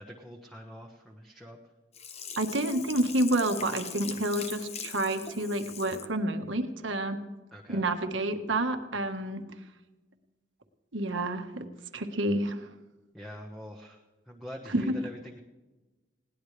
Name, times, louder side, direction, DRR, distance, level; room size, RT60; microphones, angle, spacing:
voice 1, 0.0-1.6 7.5-7.9 11.8-11.9 13.1-15.4, equal, ahead, -1 dB, 1.3 m, -45 dB
Sink (filling or washing), 1.9-6.1 6.6-6.7, left 7 dB, 35° left, 1.0 m, -41 dB
voice 2, 2.4-7.2 7.7-9.4 10.9-11.7 11.9-12.7 14.7-15.1, right 1 dB, 80° right, 6 dB, 1.6 m, -29 dB
20.5 x 18.0 x 3.4 m, 1.2 s
head